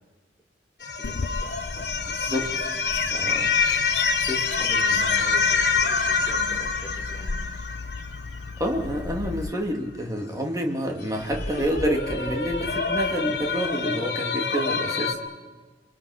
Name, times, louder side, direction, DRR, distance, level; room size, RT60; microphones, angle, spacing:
sound 1, 0.8-8.7 11.1-15.1, left 4 dB, 65° left, 2.9 m, -26 dB
voice 1, 0.9-1.9 4.0-7.7, equal, ahead, -5 dB, 5.8 m, -44 dB
Bird vocalization bird call bird song, 1.0-9.5, left 6 dB, 85° left, 0.7 m, -33 dB
voice 2, 2.3-2.6 3.1-3.6 4.3-4.8 8.6-15.2, equal, 20° right, 2 dB, 2.6 m, -28 dB
29.5 x 23.0 x 5.8 m, 1.3 s
head